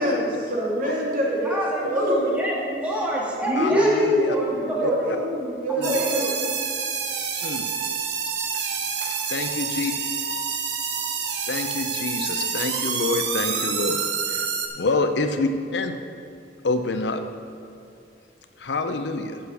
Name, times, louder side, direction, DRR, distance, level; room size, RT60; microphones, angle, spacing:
voice 1, 0.0-2.3 3.4-6.3, equal, 50° right, -4 dB, 2.2 m, -24 dB
voice 2, 1.4-5.1 5.7-6.4 13.5-13.9, right 1 dB, 10° right, -4 dB, 1.8 m, -28 dB
voice 3, 3.5-4.4 4.8-4.9 5.8-5.9 7.4-7.6 9.3-9.9 11.5-14.0 14.3-14.5 14.8-15.9 16.6-17.2 18.6-19.4, left 3 dB, 70° left, 7 dB, 0.6 m, -27 dB
sound 1, 5.8-14.7, right 6 dB, 70° right, 0.9 m, -28 dB
8.6 x 6.4 x 6.4 m, 2.6 s
head